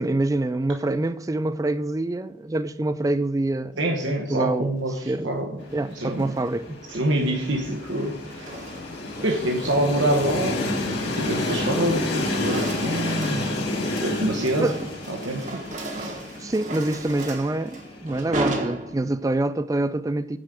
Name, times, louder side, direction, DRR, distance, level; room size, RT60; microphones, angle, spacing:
voice 1, 0.0-4.7 5.1-6.8 9.2-9.3 14.6-14.8 16.4-20.4, right 2 dB, 15° right, 0.3 m, -26 dB
voice 2, 3.8-5.5 5.9-6.4 6.9-8.4 9.2-10.6 10.8-13.6 14.0-14.7 15.1-15.6 15.9-16.1, right 1 dB, 75° right, 1.1 m, -26 dB
Train, 5.6-18.6, left 2 dB, 55° left, 2.3 m, -30 dB
sound 1, 6.0-6.5 7.6-9.2 9.6-9.9 10.3-11.8 12.0-19.4, right 2 dB, 40° right, 1.4 m, -36 dB
9.6 x 5.1 x 7.6 m
head